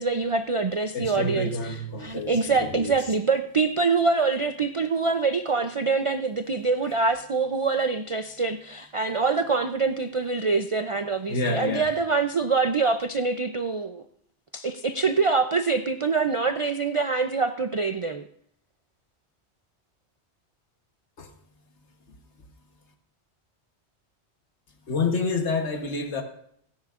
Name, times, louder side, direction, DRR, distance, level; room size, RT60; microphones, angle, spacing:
voice 1, 0.0-14.0 14.5-18.2, right 4 dB, 40° right, 7 dB, 0.5 m, -25 dB
voice 2, 0.9-2.9 11.3-11.9 21.2-21.3 24.9-26.2, left 3 dB, 85° left, 4 dB, 1.5 m, -28 dB
28.5 x 10.5 x 2.5 m, 0.68 s
omnidirectional pair, 1.1 m